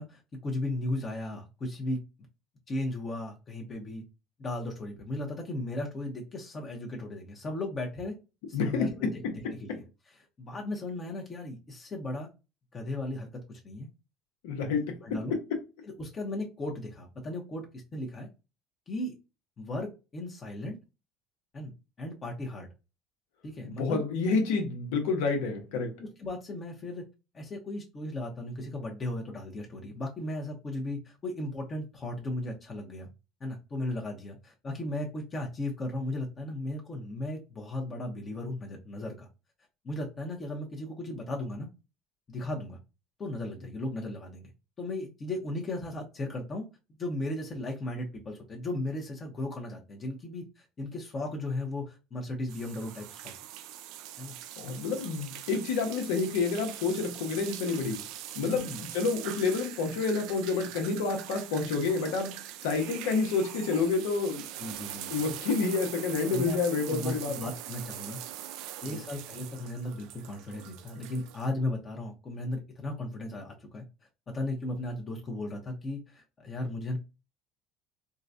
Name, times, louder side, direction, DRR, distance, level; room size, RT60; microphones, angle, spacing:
voice 1, 0.0-2.0 2.7-4.0 4.4-8.1 8.5-8.9 9.6-9.7 10.4-12.3 12.7-13.9 15.0-15.3 16.0-17.7 17.9-18.3 18.9-19.1 19.6-20.8 21.5-21.7 22.0-22.7 23.4-24.0 26.0-27.0 27.3-33.1 33.4-39.3 39.8-41.7 42.3-42.8 43.2-44.5 44.8-46.6 47.0-53.3 54.2-54.3 58.4-58.8 64.6-65.3 66.3-66.6 66.9-68.2 68.8-73.8 74.3-77.0, left 1 dB, 35° left, 0.9 m, -36 dB
voice 2, 8.5-8.9 14.4-15.0 23.6-26.0 54.6-58.0 58.3-64.4 65.1-67.5 68.9-69.0, left 4 dB, 85° left, 1.0 m, -29 dB
sound 1, 52.5-71.5, right 12 dB, 70° right, 0.3 m, -42 dB
3.8 x 2.3 x 2.6 m
supercardioid pair, 95°, 0 cm